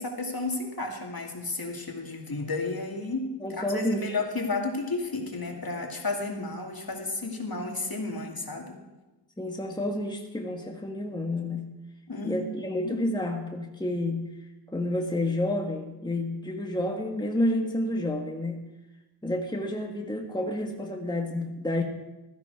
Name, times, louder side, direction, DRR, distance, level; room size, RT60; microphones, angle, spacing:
voice 1, 0.0-8.8 12.1-13.0, left 3 dB, 50° left, 1 dB, 2.4 m, -32 dB
voice 2, 3.4-4.2 9.4-11.7 12.2-14.3 14.7-18.6 19.2-21.8, left 1 dB, 10° left, 2 dB, 1.5 m, -30 dB
15.5 x 13.5 x 4.7 m, 1.0 s
wide cardioid pair, 60°, 46 cm